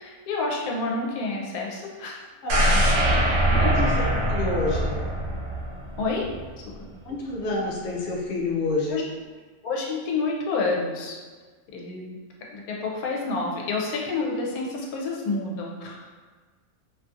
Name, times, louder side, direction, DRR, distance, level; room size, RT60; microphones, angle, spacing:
voice 1, 0.0-2.3 3.5-4.1 6.0-6.2 6.8-6.9 8.9-9.0 9.6-11.2 11.7-12.0 12.5-16.1, left 3 dB, 90° left, -2 dB, 1.1 m, -29 dB
voice 2, 2.4-2.8 3.7-3.9 4.3-5.0 7.1-9.1, left 3 dB, 60° left, -3 dB, 0.7 m, -28 dB
sound 1, 2.5-6.5 6.8-6.9, right 1 dB, 70° right, 0.6 m, -23 dB
2.7 x 2.6 x 2.3 m, 1.4 s
omnidirectional pair, 1.5 m